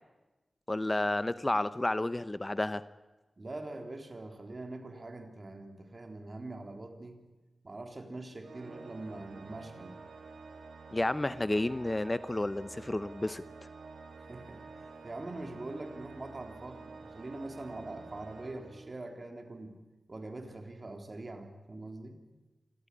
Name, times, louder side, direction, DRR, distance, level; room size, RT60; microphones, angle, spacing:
voice 1, 0.7-2.8 10.9-13.4, left 1 dB, 25° left, 14 dB, 0.7 m, -31 dB
voice 2, 3.4-7.2 7.6-10.0 14.2-19.7 20.1-22.2, right 2 dB, 45° right, 5 dB, 3.6 m, -43 dB
Organ, 8.4-19.3, right 4 dB, 85° right, 1.7 m, -49 dB
26.5 x 14.0 x 9.9 m, 1.1 s
cardioid pair, 55°, 0 cm